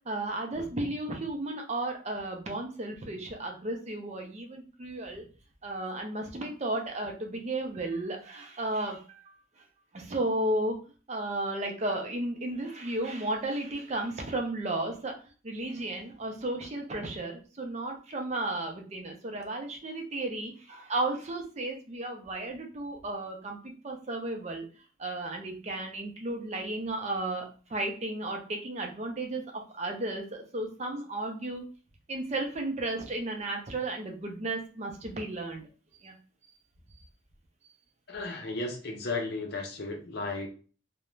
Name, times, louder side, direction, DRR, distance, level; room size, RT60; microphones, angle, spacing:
voice 1, 0.1-5.2 5.6-9.3 9.9-10.8 11.1-15.1 15.4-24.7 25.0-29.4 29.7-31.6 32.1-35.6 36.0-36.1, right 2 dB, 35° right, 3 dB, 0.5 m, -34 dB
voice 2, 38.1-40.5, left 3 dB, 50° left, 3 dB, 0.6 m, -34 dB
2.4 x 2.1 x 3.0 m, 0.37 s
head